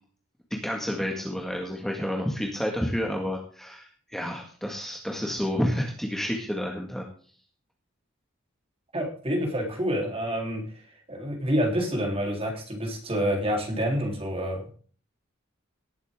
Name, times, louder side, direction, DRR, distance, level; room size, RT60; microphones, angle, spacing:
voice 1, 0.5-7.1, equal, ahead, 0 dB, 1.9 m, -30 dB
voice 2, 8.9-10.6 11.1-14.7, equal, 30° right, 1 dB, 3.7 m, -28 dB
18.5 x 8.3 x 3.7 m, 0.44 s
head